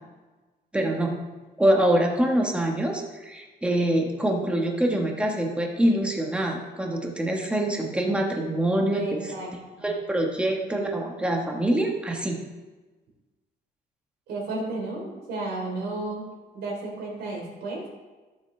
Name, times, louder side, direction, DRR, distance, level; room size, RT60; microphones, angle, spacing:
voice 1, 0.7-1.1 1.6-9.3 9.8-12.4, right 1 dB, 5° right, 1 dB, 1.2 m, -25 dB
voice 2, 8.9-9.5 9.8-9.9 14.3-16.2 16.5-17.8, right 2 dB, 80° right, -3 dB, 3.4 m, -33 dB
14.5 x 7.0 x 3.2 m, 1.2 s
cardioid pair, 170°, 17 cm